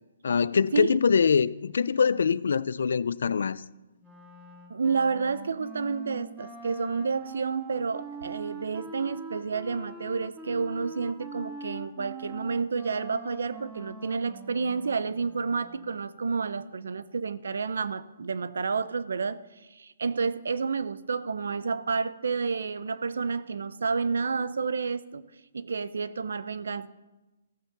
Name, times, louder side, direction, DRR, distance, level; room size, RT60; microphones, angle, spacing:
voice 1, 0.2-3.6, left 6 dB, 75° left, 19 dB, 0.4 m, -24 dB
Wind instrument woodwind instrument, 4.0-16.1, right 3 dB, 10° right, 1.5 m, -43 dB
voice 2, 4.7-25.3 25.5-26.9, right 5 dB, 80° right, 16 dB, 0.6 m, -30 dB
14.5 x 5.9 x 6.7 m, 1.1 s
hypercardioid pair, 150°, 0 cm